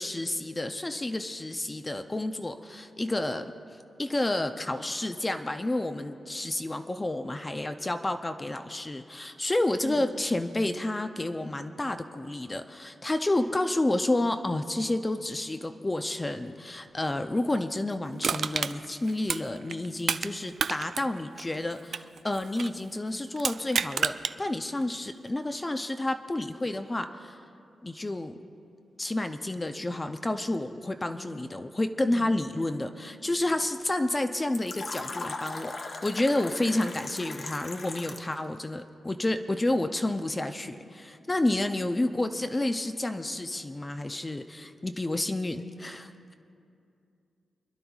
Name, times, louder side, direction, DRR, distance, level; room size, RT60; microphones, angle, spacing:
voice 1, 0.0-27.4 27.8-28.3 29.0-46.3, left 1 dB, 20° left, 7 dB, 0.5 m, -30 dB
voice 2, 9.8-10.2 32.1-32.4, right 1 dB, 50° right, 5 dB, 0.8 m, -40 dB
Crushing, 18.2-20.3 20.6-22.8 23.4-24.3 24.8-24.9, right 6 dB, 65° right, 0.3 m, -30 dB
Fill (with liquid), 34.5-38.4, left 3 dB, 50° left, 0.9 m, -38 dB
29.0 x 11.5 x 2.4 m, 2.5 s
wide cardioid pair, 120°, 0 cm